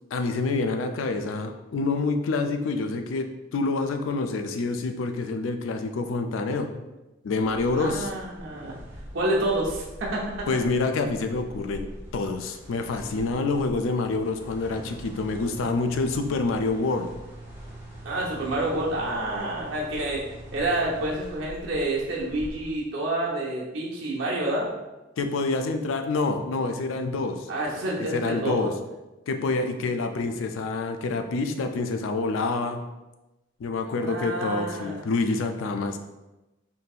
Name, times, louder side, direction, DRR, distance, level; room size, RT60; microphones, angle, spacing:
voice 1, 0.1-6.7 7.2-8.1 10.5-17.1 25.2-27.5 28.0-28.7 29.3-32.8 33.6-36.0, left 3 dB, 85° left, 6 dB, 0.4 m, -27 dB
sound 1, 7.4-22.8, equal, 10° right, 0.8 m, -43 dB
voice 2, 7.7-8.8 9.1-10.5 18.0-20.2 20.5-24.7 27.5-28.7 34.0-35.0, right 1 dB, 85° right, -4 dB, 0.8 m, -28 dB
3.8 x 2.7 x 2.4 m, 1.0 s
head